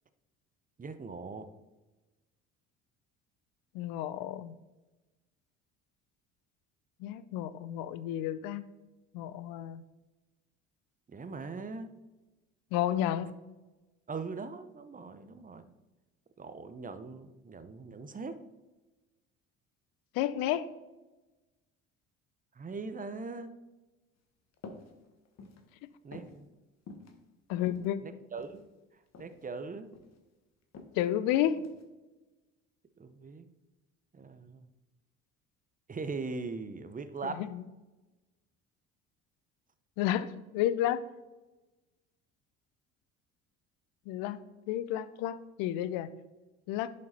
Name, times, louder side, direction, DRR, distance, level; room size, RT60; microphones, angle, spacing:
voice 1, 0.8-1.5 11.1-11.9 14.1-15.7 16.4-18.4 22.6-23.5 26.0-26.5 28.0-28.7 29.2-29.9 33.0-33.5 34.1-34.7 35.9-37.4, right 4 dB, 20° right, 11 dB, 0.8 m, -40 dB
voice 2, 3.7-4.5 7.0-8.6 9.1-9.8 12.7-13.3 20.1-20.7 27.5-28.0 31.0-31.7 37.2-37.6 40.0-41.0 44.1-46.1 46.7-46.9, left 11 dB, 65° left, 16 dB, 0.6 m, -31 dB
sound 1, 24.6-24.9 25.3-25.6 26.1-26.4 26.9-27.1 27.6-28.6 29.1-29.4 29.7-30.2 30.7-30.9 31.6-31.8, left 3 dB, 45° left, 1.4 m, -47 dB
10.5 x 5.3 x 4.1 m, 1.1 s
hypercardioid pair, 60°, 37 cm